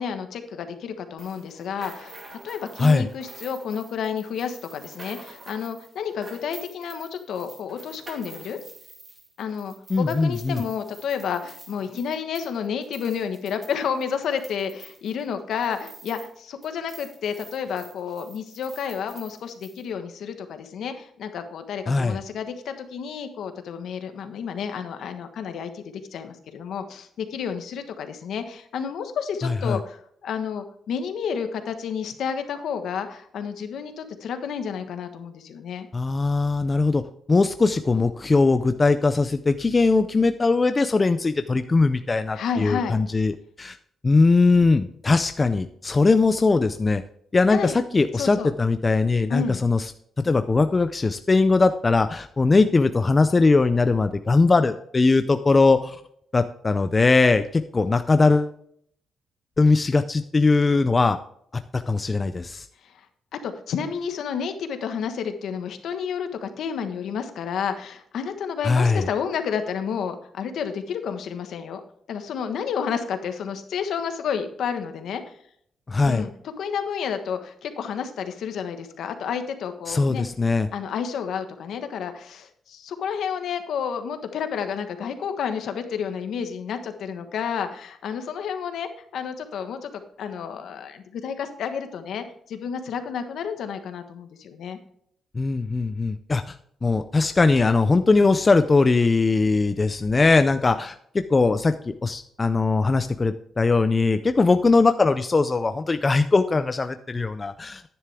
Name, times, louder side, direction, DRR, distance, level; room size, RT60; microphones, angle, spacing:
voice 1, 0.0-8.6 9.4-35.9 42.3-43.0 47.5-47.7 48.1-48.5 49.3-49.6 62.8-63.0 63.3-71.8 72.1-75.3 76.0-76.3 76.6-80.3 80.7-94.8, left 7 dB, 65° left, 7 dB, 1.3 m, -30 dB
sound 1, 1.2-16.4 16.6-19.8, right 2 dB, 25° right, 2.1 m, -47 dB
voice 2, 9.9-10.6 21.9-22.2 29.4-29.8 35.9-37.0 37.3-43.8 44.0-47.0 47.3-49.8 50.2-56.0 56.3-58.5 59.6-61.2 61.7-62.7 68.6-69.1 75.9-76.2 79.9-80.7 95.3-96.5 96.8-107.9, left 3 dB, 20° left, 10 dB, 0.4 m, -20 dB
11.0 x 9.8 x 3.5 m, 0.67 s
wide cardioid pair, 175°, 0 cm